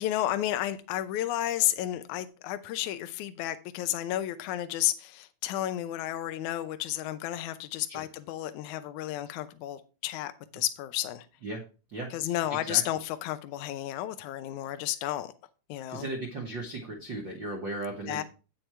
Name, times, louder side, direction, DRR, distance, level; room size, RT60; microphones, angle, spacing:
voice 1, 0.0-11.3 12.1-15.3 15.7-16.1 18.0-18.2, left 13 dB, 80° left, 1.7 m, -32 dB
voice 2, 11.9-12.8 15.9-18.2, right 2 dB, 60° right, 1.2 m, -37 dB
9.0 x 6.5 x 4.5 m
omnidirectional pair, 4.4 m